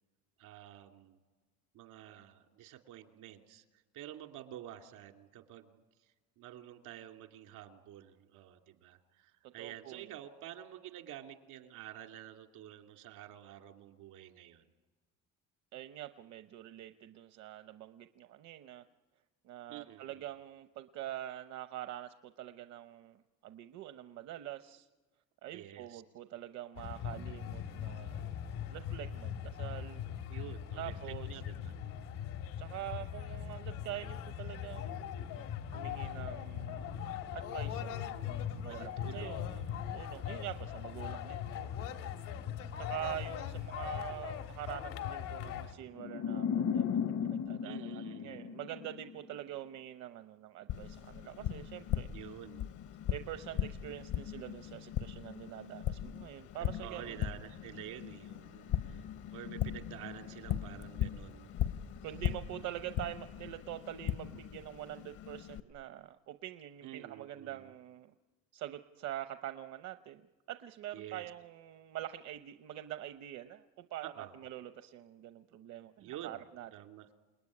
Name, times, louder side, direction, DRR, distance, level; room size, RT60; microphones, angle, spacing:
voice 1, 0.4-1.2 1.7-3.6 3.9-5.7 6.4-14.7 19.7-20.2 25.5-26.0 30.3-32.0 38.7-39.9 47.6-48.4 52.1-52.7 56.6-59.0 59.3-61.5 66.8-67.7 70.9-71.2 74.0-74.3 76.0-77.1, right 12 dB, 85° right, 4 dB, 2.6 m, -49 dB
voice 2, 9.6-10.1 15.7-18.8 19.4-24.9 25.4-28.3 28.7-30.0 30.8-31.3 32.6-35.0 35.7-36.9 37.3-38.2 38.6-39.4 39.9-41.7 42.8-52.3 53.1-57.2 62.0-68.1 68.5-76.7, right 12 dB, 60° right, 9 dB, 0.8 m, -45 dB
sound 1, 26.8-45.7, left 9 dB, 90° left, 2.1 m, -40 dB
sound 2, 46.0-49.2, left 7 dB, 55° left, 0.8 m, -35 dB
Tap, 50.7-65.6, left 10 dB, 70° left, 1.0 m, -39 dB
28.5 x 19.5 x 9.7 m, 1.3 s
cardioid pair, 145°, 31 cm